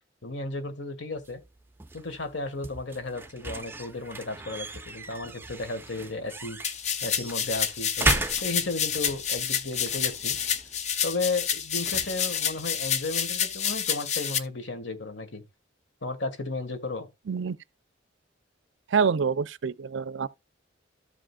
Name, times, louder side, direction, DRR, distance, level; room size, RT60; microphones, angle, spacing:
voice 1, 0.2-1.4 1.9-6.6 7.0-10.4 11.0-15.4 16.0-17.1, left 3 dB, 70° left, 1.6 m, -34 dB
sound 1, 1.2-13.9, right 2 dB, 10° right, 0.5 m, -37 dB
sound 2, 6.6-14.4, left 8 dB, 35° left, 0.6 m, -29 dB
voice 2, 18.9-20.3, right 6 dB, 75° right, 0.5 m, -26 dB
14.0 x 5.0 x 2.2 m
head